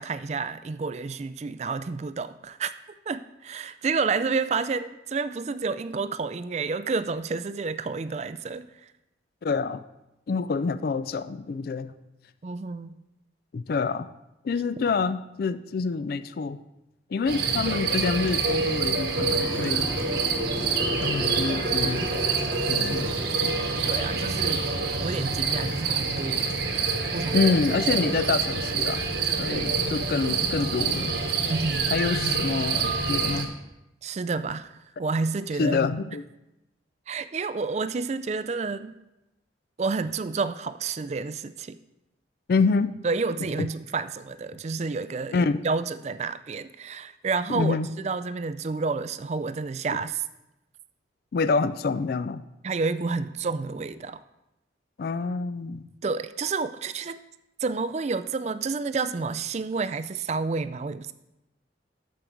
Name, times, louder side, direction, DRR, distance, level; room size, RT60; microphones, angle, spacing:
voice 1, 0.0-2.7 3.1-8.9 12.4-13.0 23.9-24.7 25.0-26.5 27.1-27.5 29.5-29.7 31.4-31.9 34.0-34.7 35.0-35.8 37.1-38.9 39.8-41.8 43.0-50.2 52.6-54.2 56.0-57.2 57.6-61.1, right 4 dB, 35° right, 13 dB, 0.3 m, -30 dB
voice 2, 9.4-9.8 10.3-11.9 13.5-14.1 14.4-16.6 17.1-19.9 21.0-22.1 22.7-23.2 23.4-23.6 27.3-29.0 29.4-31.2 31.9-33.5 35.6-36.2 42.5-42.9 43.6-43.7 45.3-45.6 47.5-47.9 49.9-50.0 51.3-52.4 55.0-55.9, left 4 dB, 50° left, 13 dB, 0.3 m, -27 dB
sound 1, 17.3-33.4, right 4 dB, 60° right, 1.2 m, -26 dB
sound 2, 19.1-25.9, left 1 dB, ahead, 0.7 m, -37 dB
13.0 x 5.2 x 4.5 m, 0.92 s
head